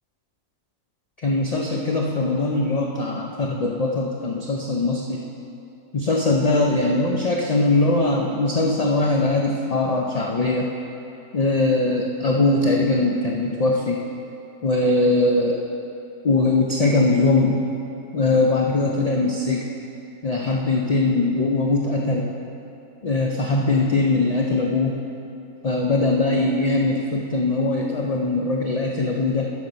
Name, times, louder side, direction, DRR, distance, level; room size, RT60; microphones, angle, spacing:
voice 1, 1.2-5.2 5.9-10.7 11.3-14.0 14.6-15.6 16.2-17.7 18.1-19.7 20.2-22.3 23.0-25.0 25.6-29.5, left 2 dB, 50° left, 0 dB, 0.4 m, -21 dB
10.5 x 6.1 x 5.2 m, 2.8 s
omnidirectional pair, 1.4 m